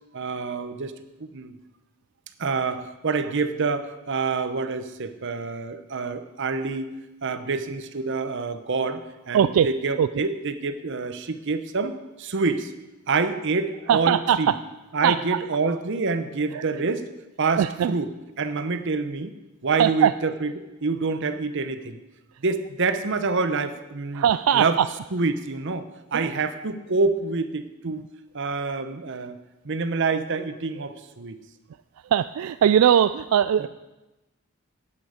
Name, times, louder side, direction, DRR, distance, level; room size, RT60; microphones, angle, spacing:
voice 1, 0.1-0.9 1.2-1.5 2.4-6.9 7.2-9.0 9.3-11.9 12.2-12.7 13.1-14.5 14.9-17.0 17.4-18.1 18.4-19.3 19.6-22.0 22.4-24.2 24.5-24.8 25.1-25.9 26.1-28.1 28.3-29.4 29.6-31.4, right 4 dB, 60° right, 10 dB, 0.9 m, -27 dB
voice 2, 9.3-9.7 10.0-10.1 13.9-14.6 15.0-15.4 16.5-16.8 17.6-17.9 19.8-20.2 24.1-24.9 26.1-26.3 27.9-28.0 32.1-33.7, right 9 dB, 85° right, 13 dB, 0.3 m, -21 dB
8.7 x 8.6 x 7.9 m, 1.0 s
head